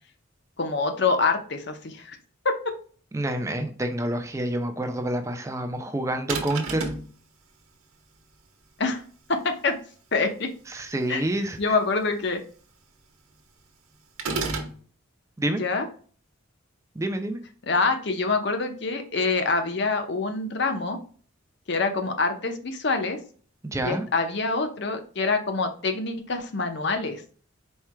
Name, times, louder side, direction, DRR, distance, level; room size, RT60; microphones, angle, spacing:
voice 1, 0.6-2.2 2.4-2.7 8.8-9.0 9.3-9.7 10.1-10.5 11.1-11.2 11.6-12.4 15.6-15.9 17.6-21.0 21.7-23.2 23.8-27.2, left 3 dB, 55° left, 6 dB, 0.7 m, -26 dB
voice 2, 3.1-6.9 10.7-11.6 15.4-15.6 17.0-17.4 23.7-24.0, right 1 dB, 15° right, 6 dB, 0.4 m, -28 dB
sound 1, 6.3-7.1 14.2-14.8, right 3 dB, 85° right, 0.9 m, -29 dB
4.6 x 4.4 x 2.2 m, 0.43 s
head